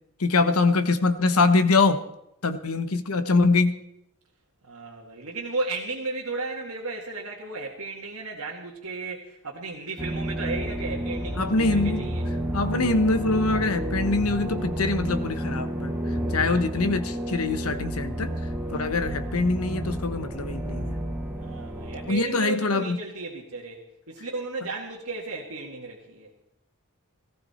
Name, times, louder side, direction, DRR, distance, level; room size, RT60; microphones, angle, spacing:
voice 1, 0.2-2.0 2.4-3.8 11.4-12.1 12.5-15.9 16.3-18.4 18.7-21.0 22.1-23.0, left 3 dB, 85° left, 10 dB, 1.1 m, -23 dB
voice 2, 4.6-12.2 16.4-16.8 21.4-26.4, right 3 dB, 85° right, -2 dB, 2.0 m, -34 dB
sound 1, 10.0-22.1, right 1 dB, 10° right, 2.2 m, -31 dB
17.5 x 15.0 x 4.3 m, 0.81 s
head